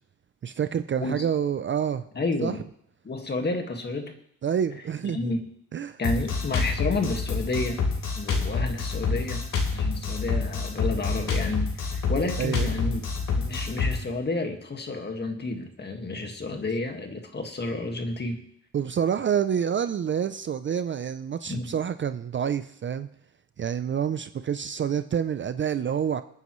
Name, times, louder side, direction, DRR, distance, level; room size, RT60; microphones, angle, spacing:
voice 1, 0.4-2.0 2.4-2.5 4.4-5.3 5.7-6.0 12.4-12.7 18.7-23.1 23.6-26.2, right 8 dB, 35° right, 11 dB, 0.5 m, -27 dB
voice 2, 2.2-2.6 3.0-4.1 5.1-5.4 6.0-7.8 8.2-9.4 9.7-13.1 13.4-18.4 21.5-21.7, left 2 dB, 30° left, 4 dB, 1.8 m, -30 dB
Drum kit, 6.0-14.0, left 4 dB, 75° left, 3.7 m, -27 dB
27.5 x 9.5 x 3.1 m, 0.70 s
cardioid pair, 125°, 32 cm